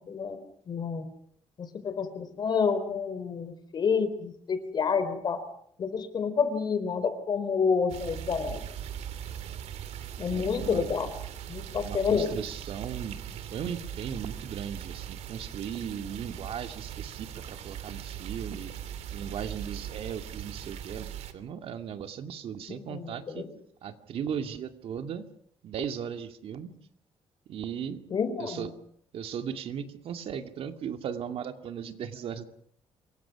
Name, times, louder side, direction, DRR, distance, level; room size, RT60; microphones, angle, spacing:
voice 1, 0.1-0.4 0.7-1.0 1.6-5.4 5.8-8.6 10.2-11.1 11.5-12.3 22.7-23.5 28.1-28.7, left 6 dB, 40° left, 10 dB, 4.2 m, -29 dB
sound 1, 7.9-21.3, right 9 dB, 85° right, 2.8 m, -40 dB
voice 2, 10.3-10.9 11.8-18.7 19.1-23.5 23.8-25.3 25.6-26.7 27.5-28.0 28.4-28.7 29.1-32.4, right 8 dB, 60° right, 7 dB, 2.4 m, -37 dB
28.0 x 23.5 x 6.1 m, 0.65 s
cardioid pair, 155°, 11 cm